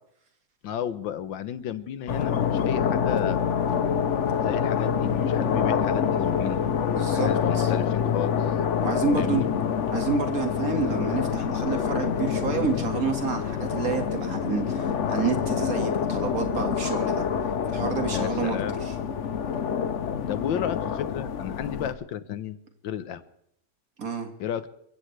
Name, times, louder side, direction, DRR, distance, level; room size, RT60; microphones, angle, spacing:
voice 1, 0.6-3.6 4.4-6.6 7.1-8.5 9.1-9.5 18.1-18.8 20.3-22.6 22.8-23.2 24.4-24.7, left 10 dB, 75° left, 13 dB, 1.6 m, -33 dB
sound 1, 2.1-21.9, left 7 dB, 55° left, 0.8 m, -26 dB
voice 2, 7.0-7.3 7.5-7.7 8.8-9.6 9.9-17.2 17.7-18.9 24.0-24.3, right 5 dB, 45° right, 5 dB, 2.3 m, -29 dB
28.5 x 15.5 x 3.3 m, 0.73 s
omnidirectional pair, 2.1 m